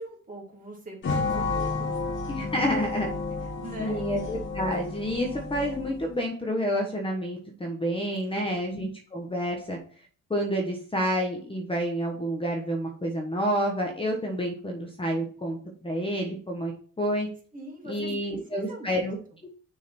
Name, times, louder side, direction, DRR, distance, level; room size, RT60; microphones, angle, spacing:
voice 1, 0.0-2.0 2.4-2.6 3.6-4.0 8.3-8.5 17.5-19.1, right 1 dB, 25° right, -1 dB, 2.6 m, -41 dB
sound 1, 1.0-6.2, left 4 dB, 40° left, 2.0 m, -31 dB
voice 2, 2.3-3.1 3.8-9.8 10.3-16.7 17.0-17.3 17.8-19.2, equal, 20° left, 1 dB, 1.1 m, -29 dB
6.3 x 3.9 x 4.2 m, 0.43 s
cardioid pair, 90°, 30 cm